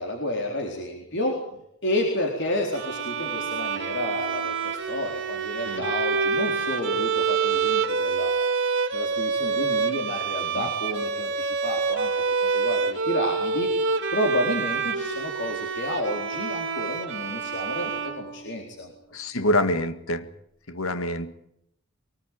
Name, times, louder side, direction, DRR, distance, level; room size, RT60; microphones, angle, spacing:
voice 1, 0.0-1.4 1.8-8.3 8.9-13.7 14.1-18.9, left 1 dB, 55° left, 1 dB, 4.0 m, -30 dB
Bowed string instrument, 2.7-18.8, right 5 dB, 55° right, 3.2 m, -27 dB
voice 2, 19.1-20.3 20.7-21.3, left 1 dB, 70° left, 11 dB, 1.9 m, -26 dB
24.0 x 19.0 x 9.2 m, 0.76 s
head